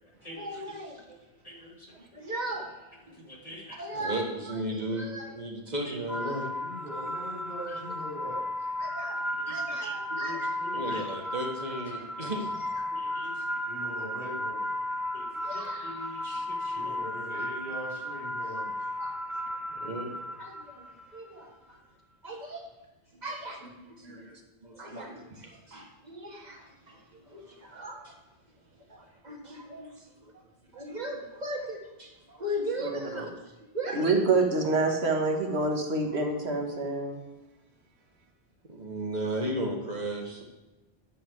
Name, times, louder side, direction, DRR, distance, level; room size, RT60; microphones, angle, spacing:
voice 1, 0.3-1.2 1.5-1.6 2.1-3.1 3.5-6.5 7.6-7.8 8.8-12.9 15.4-16.0 17.0-17.4 18.5-18.6 19.0-19.1 19.8-21.5 22.2-22.7 23.1-24.4 24.6-28.1 28.9-30.4 30.7-34.0 38.6-40.4, right 1 dB, 40° right, 0 dB, 1.8 m, -37 dB
voice 2, 1.5-1.9 3.3-3.8 5.9-6.0 9.5-10.4 10.6-11.0 12.9-13.4 15.1-15.3 15.5-17.0, equal, 35° left, -2 dB, 1.7 m, -45 dB
voice 3, 6.1-8.4 13.7-14.6 16.7-18.7 21.7-21.8 27.2-27.6 29.9-30.0, equal, 60° left, -5 dB, 3.9 m, -42 dB
sound 1, 6.1-21.2, left 1 dB, ahead, 0.5 m, -34 dB
voice 4, 32.8-33.3 33.9-37.2, right 3 dB, 85° right, 2 dB, 1.7 m, -27 dB
10.0 x 7.5 x 4.6 m, 1.1 s
omnidirectional pair, 1.1 m